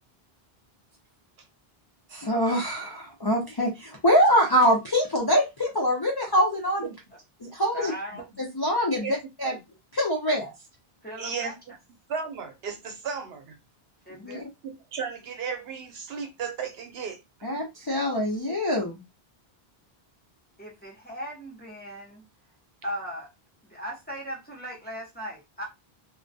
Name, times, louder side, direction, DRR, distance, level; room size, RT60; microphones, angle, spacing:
voice 1, 2.1-6.9 7.4-7.9 8.4-9.6 9.9-10.5 14.1-14.5 17.4-19.0, equal, 35° left, 0.4 m, -24 dB
voice 2, 7.7-8.2 11.0-11.6 14.0-14.4 20.6-22.2 22.8-23.3 23.6-25.6, equal, 10° left, 0.7 m, -38 dB
voice 3, 11.2-11.5 12.1-13.6 14.6-17.5, right 6 dB, 75° right, 0.8 m, -35 dB
2.2 x 2.2 x 2.6 m
omnidirectional pair, 1.1 m